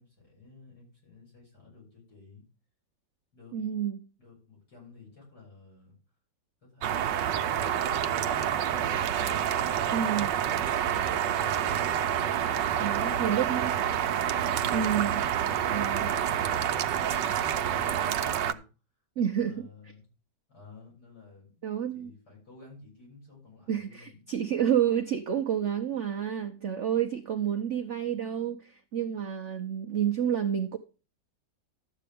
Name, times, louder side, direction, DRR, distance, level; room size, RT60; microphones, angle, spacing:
voice 1, 0.0-2.4 3.3-3.7 4.2-6.0 6.6-7.8 8.2-9.0 9.8-11.7 12.6-13.5 14.6-18.7 19.3-20.1 20.5-21.6 21.9-24.2, left 4 dB, 60° left, 7.3 m, -53 dB
voice 2, 3.5-4.0 9.9-10.3 12.8-13.7 14.7-15.2 15.7-16.1 19.2-19.7 21.6-22.1 23.7-30.8, right 9 dB, 60° right, 0.8 m, -29 dB
sound 1, 6.8-18.5, right 9 dB, 80° right, 1.3 m, -28 dB
12.5 x 8.4 x 3.5 m
omnidirectional pair, 1.9 m